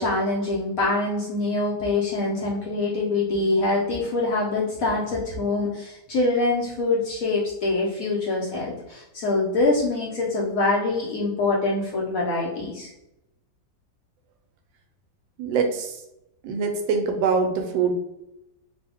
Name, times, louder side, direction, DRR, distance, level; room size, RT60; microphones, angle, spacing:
voice 1, 0.0-12.9, left 2 dB, 65° left, -4 dB, 0.9 m, -24 dB
voice 2, 15.4-15.9 16.4-17.9, right 5 dB, 85° right, 4 dB, 1.3 m, -23 dB
3.2 x 2.1 x 3.4 m, 0.88 s
omnidirectional pair, 2.0 m